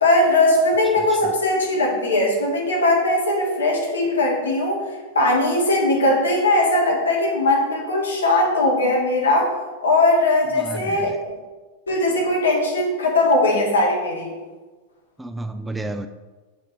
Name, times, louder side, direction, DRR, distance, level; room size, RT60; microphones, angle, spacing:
voice 1, 0.0-4.8 5.1-9.5 9.8-11.1 11.9-14.3, left 2 dB, 70° left, -2 dB, 1.9 m, -19 dB
voice 2, 1.0-1.3 10.5-11.2 15.2-16.1, right 2 dB, 5° right, 9 dB, 0.3 m, -32 dB
6.4 x 5.1 x 4.3 m, 1.3 s
figure-of-eight pair, 90°, 0 cm